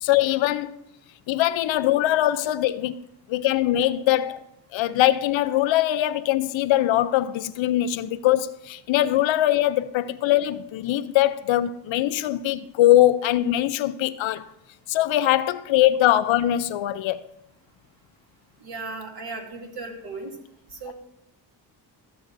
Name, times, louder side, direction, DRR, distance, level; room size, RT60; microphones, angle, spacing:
voice 1, 0.0-0.7 1.3-2.9 3.3-4.4 4.7-14.5 14.9-17.2, left 14 dB, 75° left, 0.6 m, -22 dB
voice 2, 18.6-20.4 20.7-20.9, right 3 dB, 55° right, 2.5 m, -36 dB
13.5 x 7.7 x 2.6 m
cardioid pair, 70°, 46 cm